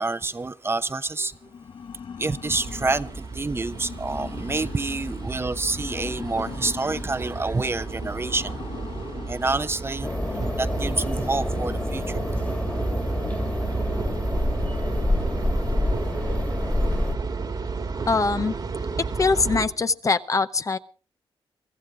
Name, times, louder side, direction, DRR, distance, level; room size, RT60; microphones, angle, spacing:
voice 1, 0.0-1.5 2.2-8.7 9.3-10.2 10.5-12.2, right 3 dB, 25° right, 0.9 m, -28 dB
sound 1, 1.2-20.0, left 6 dB, 60° left, 0.9 m, -42 dB
sound 2, 2.5-19.7, right 4 dB, 45° right, 1.8 m, -32 dB
sound 3, 10.0-17.2, left 1 dB, 15° left, 1.8 m, -27 dB
voice 2, 18.1-18.5 19.2-20.8, left 4 dB, 35° left, 0.7 m, -22 dB
24.0 x 14.5 x 3.7 m
cardioid pair, 85°, 10 cm